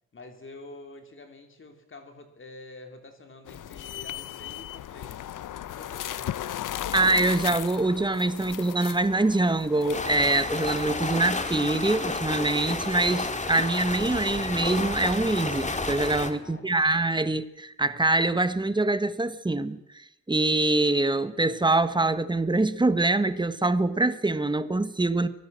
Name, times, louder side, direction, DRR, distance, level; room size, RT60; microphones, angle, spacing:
voice 1, 0.1-5.3 5.7-6.6 16.4-17.0, left 2 dB, 40° left, 3.3 m, -47 dB
sound 1, 3.5-11.0, left 12 dB, 75° left, 0.7 m, -36 dB
voice 2, 6.9-25.3, right 2 dB, 15° right, 1.2 m, -24 dB
sound 2, 9.9-16.3, left 3 dB, 20° left, 2.0 m, -31 dB
23.5 x 17.5 x 7.6 m
wide cardioid pair, 125°, 32 cm